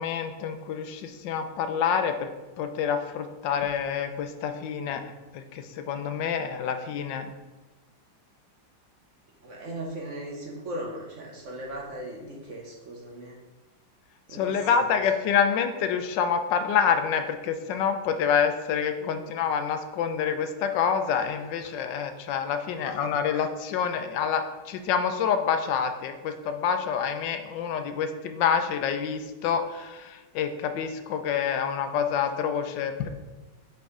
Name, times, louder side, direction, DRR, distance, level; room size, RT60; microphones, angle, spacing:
voice 1, 0.0-2.3 2.6-5.0 5.3-7.3 14.3-33.1, left 7 dB, 80° left, 8 dB, 1.2 m, -27 dB
voice 2, 9.4-13.4 14.3-15.0 19.0-19.3, right 1 dB, 55° right, -1 dB, 1.0 m, -38 dB
4.7 x 4.5 x 4.8 m, 1.2 s
omnidirectional pair, 2.0 m